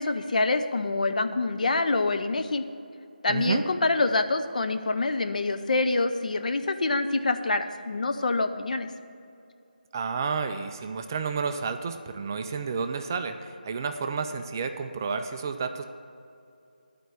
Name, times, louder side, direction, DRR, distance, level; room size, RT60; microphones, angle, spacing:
voice 1, 0.0-2.6 3.2-8.9, left 3 dB, 55° left, 8 dB, 0.6 m, -26 dB
voice 2, 3.3-3.6 9.9-15.8, right 5 dB, 20° right, 7 dB, 0.3 m, -31 dB
11.5 x 4.5 x 7.8 m, 2.5 s
figure-of-eight pair, 160°, 5 cm